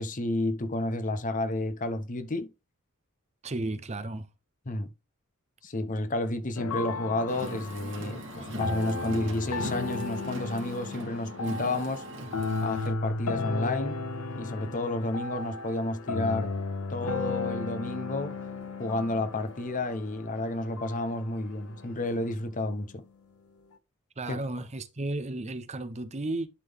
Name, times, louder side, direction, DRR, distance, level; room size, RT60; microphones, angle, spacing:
voice 1, 0.0-2.5 4.7-4.9 5.6-12.0 12.6-14.0 14.3-16.5 16.9-18.4 18.8-23.0 24.3-24.4, left 2 dB, 35° left, 0.8 m, -31 dB
voice 2, 3.4-4.3 24.2-26.5, right 2 dB, 30° right, 0.7 m, -33 dB
sound 1, 6.6-22.7, left 3 dB, 80° left, 0.6 m, -35 dB
Car, 7.3-12.9, right 2 dB, 60° right, 2.0 m, -41 dB
sound 2, 14.1-22.3, left 3 dB, 55° left, 1.2 m, -54 dB
11.0 x 3.8 x 3.4 m
head